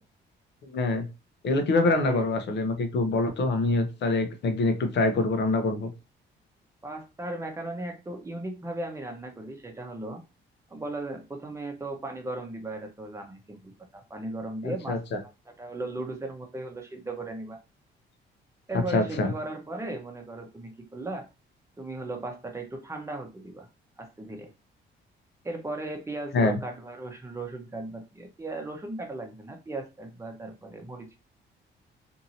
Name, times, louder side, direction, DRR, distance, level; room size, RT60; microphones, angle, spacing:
voice 1, 0.6-1.1 1.4-5.9 14.6-15.0 18.9-19.3 26.3-26.6, left 2 dB, 60° left, 0.7 m, -25 dB
voice 2, 1.8-2.3 6.8-10.2 10.7-15.0 15.5-17.6 18.7-21.3 21.8-23.7 24.0-24.5 25.4-31.2, right 2 dB, 15° right, 0.8 m, -37 dB
2.7 x 2.7 x 2.6 m
cardioid pair, 90°, 20 cm